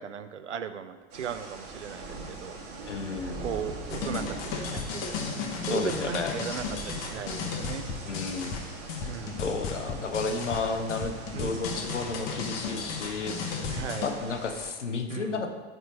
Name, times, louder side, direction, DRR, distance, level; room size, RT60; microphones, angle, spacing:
voice 1, 0.0-2.6 3.4-7.9 9.1-9.4 10.7-10.8 11.3-11.7 13.7-14.1 15.1-15.5, right 8 dB, 85° right, 11 dB, 0.5 m, -37 dB
sound 1, 1.1-14.7, right 3 dB, 50° right, 1.5 m, -42 dB
voice 2, 2.9-3.4 5.7-6.4 8.1-8.6 9.0-9.1 9.4-13.6 14.0-15.5, left 4 dB, 85° left, 5 dB, 0.7 m, -32 dB
sound 2, 3.3-7.2 7.4-7.7 8.1-8.2 8.5-8.6 8.9-9.1, right 2 dB, 30° right, 0.9 m, -45 dB
sound 3, 3.9-14.1, left 5 dB, 40° left, 0.9 m, -35 dB
4.5 x 4.4 x 5.3 m, 1.3 s
figure-of-eight pair, 90°, 35 cm